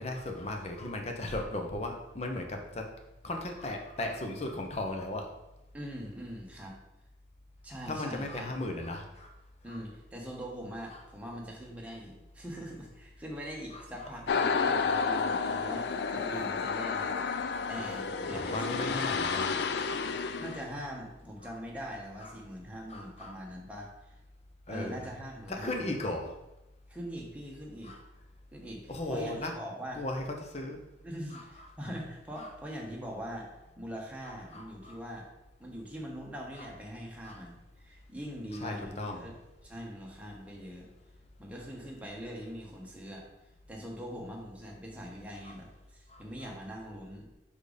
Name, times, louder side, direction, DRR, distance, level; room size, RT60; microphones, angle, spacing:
voice 1, 0.0-2.9 3.2-5.3 7.9-9.4 9.7-9.8 10.9-11.0 13.7-13.8 14.3-14.4 14.9-15.0 17.5-17.9 18.3-20.5 22.2-22.3 22.9-23.4 24.7-25.0 25.5-26.3 27.8-28.0 28.9-29.5 29.9-30.8 31.3-31.4 32.4-32.5 34.2-35.0 36.6-36.7 37.2-37.4 38.6-39.3 45.4-45.5 46.1-46.5, left 2 dB, 40° left, 3 dB, 0.9 m, -37 dB
voice 2, 5.7-6.7 7.6-8.5 9.6-17.2 17.7-19.1 20.4-24.2 24.7-25.9 26.9-27.9 28.5-30.0 31.0-35.3 35.6-39.3 39.6-40.9 41.4-43.3 43.7-47.3, equal, 10° right, -2 dB, 1.2 m, -42 dB
sound 1, 14.3-20.7, left 5 dB, 70° left, 0.4 m, -31 dB
5.0 x 4.5 x 5.1 m, 0.96 s
head